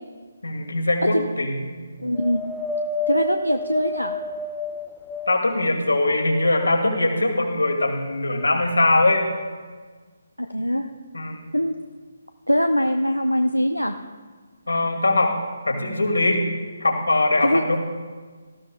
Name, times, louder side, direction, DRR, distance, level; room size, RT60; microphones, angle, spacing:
voice 1, 0.4-1.7 5.3-9.3 11.1-11.4 14.7-16.4 16.8-17.8, left 2 dB, 70° left, 2 dB, 2.2 m, -21 dB
voice 2, 2.0-2.4 3.1-4.1 10.4-10.9 11.5-11.7 12.5-13.9 17.4-17.6, equal, 90° left, 5 dB, 0.7 m, -22 dB
Wind, 2.1-5.7 6.3-7.3 8.1-8.2, left 2 dB, 5° left, 0.6 m, -31 dB
18.0 x 13.5 x 2.3 m, 1.5 s
figure-of-eight pair, 145°, 0 cm